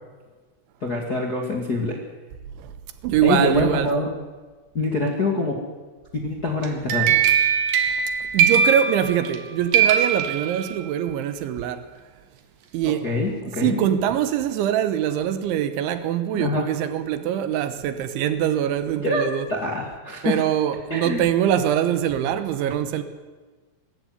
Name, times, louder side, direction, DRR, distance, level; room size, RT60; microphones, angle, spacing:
voice 1, 0.8-2.0 3.2-4.1 4.7-5.5 6.1-7.2 13.0-13.8 16.3-16.6 19.0-20.4 20.9-21.2, left 2 dB, 35° left, 1.5 m, -25 dB
voice 2, 3.0-3.9 8.3-11.9 12.7-13.1 13.6-19.5 20.2-23.0, right 10 dB, 75° right, 3.5 m, -23 dB
sound 1, 6.6-9.4 9.7-11.0, right 7 dB, 60° right, 3.1 m, -21 dB
24.0 x 13.5 x 9.6 m
omnidirectional pair, 5.6 m